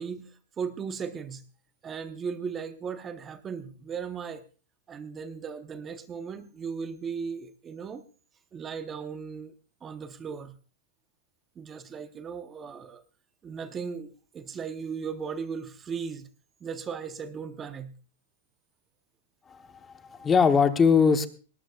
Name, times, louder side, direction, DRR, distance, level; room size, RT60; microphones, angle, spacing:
voice 1, 0.0-1.4 1.8-4.4 4.9-8.0 8.5-9.5 9.8-10.6 11.6-13.0 13.4-16.3 16.6-17.9 20.1-20.3, right 6 dB, 20° right, 10 dB, 0.8 m, -37 dB
voice 2, 19.5-21.3, left 6 dB, 15° left, 9 dB, 0.9 m, -22 dB
19.5 x 17.5 x 2.3 m, 0.36 s
supercardioid pair, 155°, 0 cm